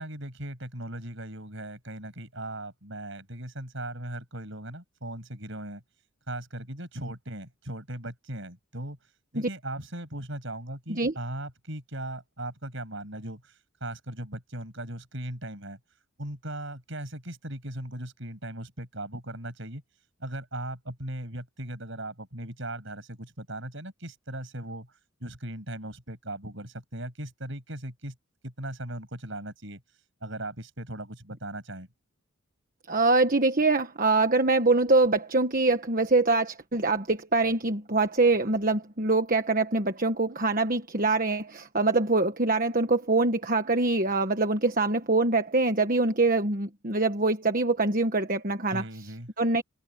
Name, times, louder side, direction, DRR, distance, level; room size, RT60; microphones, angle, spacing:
voice 1, 0.0-5.8 6.3-9.0 9.3-13.5 13.8-15.8 16.2-19.8 20.2-24.9 25.2-28.1 28.4-29.8 30.2-31.9 48.7-49.3, right 1 dB, 60° right, 7.9 m, -38 dB
voice 2, 32.9-48.8 49.4-49.6, right 3 dB, 40° right, 1.4 m, -24 dB
open air
head